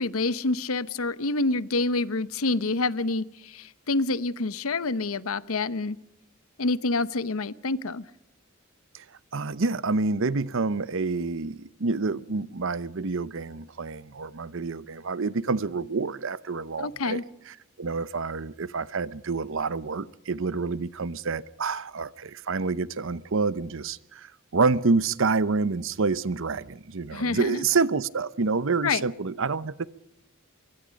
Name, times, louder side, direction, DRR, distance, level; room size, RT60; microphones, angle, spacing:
voice 1, 0.0-6.0 6.6-8.1 16.8-17.2 27.1-27.6 28.8-29.0, left 3 dB, 80° left, 17 dB, 0.9 m, -27 dB
voice 2, 9.3-29.9, right 4 dB, 65° right, 19 dB, 0.8 m, -28 dB
24.0 x 23.5 x 5.2 m, 0.79 s
head